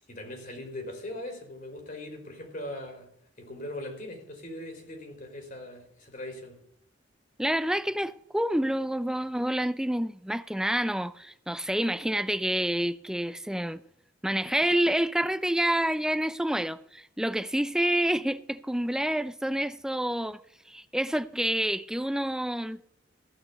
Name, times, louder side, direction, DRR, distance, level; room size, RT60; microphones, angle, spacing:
voice 1, 0.1-3.1 3.4-6.6, left 1 dB, 45° left, 3.9 m, -40 dB
voice 2, 7.4-13.8 14.2-20.4 20.7-22.8, right 1 dB, 5° right, 0.4 m, -28 dB
14.5 x 6.1 x 8.3 m
head